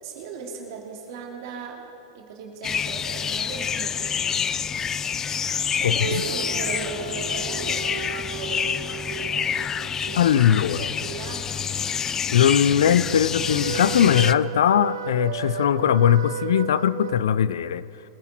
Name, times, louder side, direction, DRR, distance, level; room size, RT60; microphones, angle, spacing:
voice 1, 0.0-4.5 5.7-8.7 9.0-11.5, right 4 dB, 60° right, 0 dB, 2.6 m, -38 dB
sound 1, 2.6-14.3, left 7 dB, 20° left, 0.4 m, -28 dB
voice 2, 5.8-6.2 10.2-10.8 12.3-17.8, left 9 dB, 75° left, 17 dB, 0.5 m, -20 dB
sound 2, 6.0-10.9 12.9-17.2, right 9 dB, 75° right, 0.6 m, -34 dB
22.5 x 10.0 x 4.5 m, 2.7 s
hypercardioid pair, 115°, 2 cm